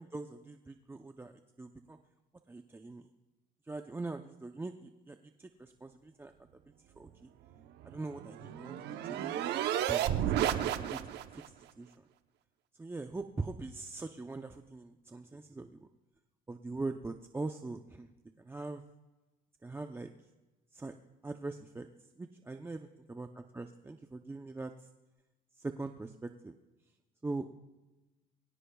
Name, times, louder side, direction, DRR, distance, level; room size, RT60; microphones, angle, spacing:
voice 1, 0.0-1.3 1.6-2.0 2.5-3.1 3.7-6.3 7.0-7.3 7.8-9.4 9.9-11.0 11.3-11.9 12.8-15.9 16.5-18.1 18.4-18.8 19.6-20.1 20.7-21.0 21.2-21.9 22.2-24.9 25.6-26.5 27.2-27.6, right 3 dB, 15° right, 6 dB, 0.7 m, -42 dB
sound 1, 7.8-11.5, right 11 dB, 80° right, 0.9 m, -32 dB
22.5 x 17.0 x 2.3 m, 1.1 s
cardioid pair, 110°, 17 cm